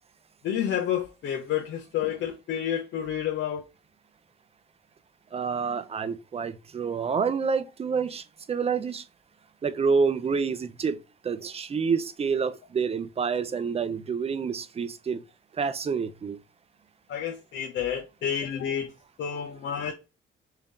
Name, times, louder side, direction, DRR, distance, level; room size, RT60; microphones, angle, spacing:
voice 1, 0.4-3.6 17.1-18.9 19.2-19.9, left 9 dB, 70° left, 0.7 m, -30 dB
voice 2, 5.3-9.0 9.6-11.0 11.2-15.2 15.6-16.4, right 5 dB, 30° right, 0.5 m, -28 dB
3.5 x 2.8 x 3.5 m
cardioid pair, 90°, 20 cm